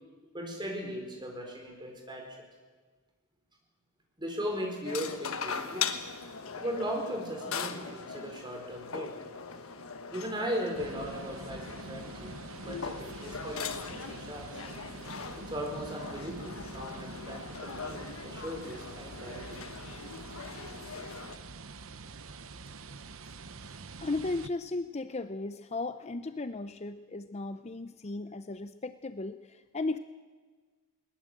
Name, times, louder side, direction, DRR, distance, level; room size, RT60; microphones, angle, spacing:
voice 1, 0.3-2.3 4.2-5.9 6.6-9.2 10.1-14.6 15.4-19.6, equal, 20° right, 2 dB, 4.4 m, -38 dB
sound 1, 4.8-21.4, left 6 dB, 75° left, 1.3 m, -40 dB
sound 2, 10.8-24.5, right 3 dB, 70° right, 0.9 m, -45 dB
voice 2, 24.0-30.0, left 2 dB, 30° left, 11 dB, 0.5 m, -36 dB
21.0 x 19.5 x 7.8 m, 1.4 s
head